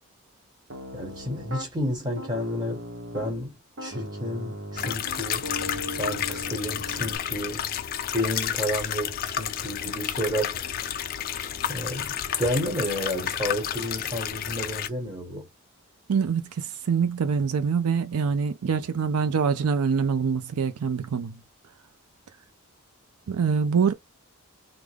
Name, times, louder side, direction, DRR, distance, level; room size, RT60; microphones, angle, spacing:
Piano, 0.7-1.7 2.2-3.4 3.8-7.2, equal, 55° right, 0.8 m, -37 dB
voice 1, 0.9-2.8 3.1-5.5 6.0-7.7 8.1-10.5 11.7-15.5, equal, 20° right, 1.3 m, -31 dB
sound 1, 4.8-14.9, left 9 dB, 40° left, 0.4 m, -31 dB
voice 2, 16.1-21.3 23.3-23.9, right 6 dB, 80° right, 0.4 m, -25 dB
3.4 x 2.1 x 3.4 m
head